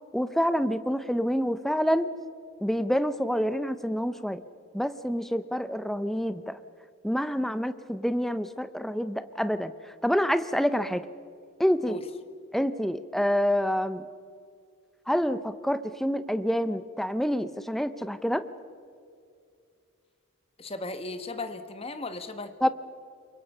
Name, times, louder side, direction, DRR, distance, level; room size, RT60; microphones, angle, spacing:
voice 1, 0.1-2.1 2.6-4.4 4.7-6.6 7.0-9.7 10.0-11.0 11.6-12.0 12.5-14.0 15.1-18.4 22.6-22.7, equal, ahead, 12 dB, 0.6 m, -27 dB
voice 2, 20.6-22.7, left 2 dB, 25° left, 9 dB, 1.2 m, -36 dB
28.5 x 23.5 x 5.5 m, 2.4 s
head